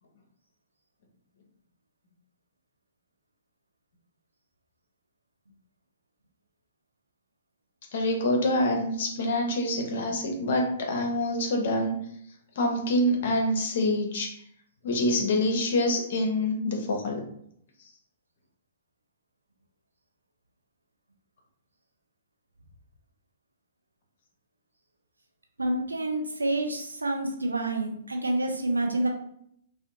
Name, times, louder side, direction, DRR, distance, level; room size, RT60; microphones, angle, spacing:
voice 1, 7.9-11.9 12.6-14.3 14.8-17.2, left 1 dB, 50° left, 2 dB, 0.6 m, -26 dB
voice 2, 25.6-29.1, right 2 dB, 80° right, 2 dB, 0.4 m, -28 dB
2.6 x 2.1 x 2.5 m, 0.70 s
figure-of-eight pair, 115°, 0 cm